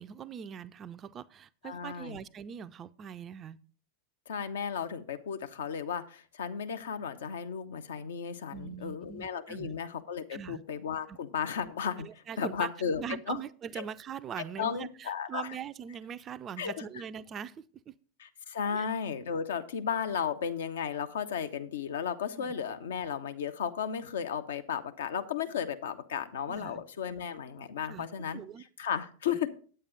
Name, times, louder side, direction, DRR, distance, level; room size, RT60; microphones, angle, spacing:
voice 1, 0.0-3.6 8.5-9.7 10.3-10.6 11.1-11.2 12.0-12.7 12.9-18.0 18.7-18.9 22.3-22.5 26.5-26.8 27.8-28.6, right 8 dB, 25° right, 0.4 m, -42 dB
voice 2, 1.6-2.2 4.3-12.1 12.4-13.0 13.3-13.4 13.8-13.9 14.6-15.5 16.6-16.7 18.2-28.4 28.8-29.5, left 7 dB, 60° left, 0.8 m, -34 dB
8.9 x 8.7 x 3.9 m
figure-of-eight pair, 90°, 0 cm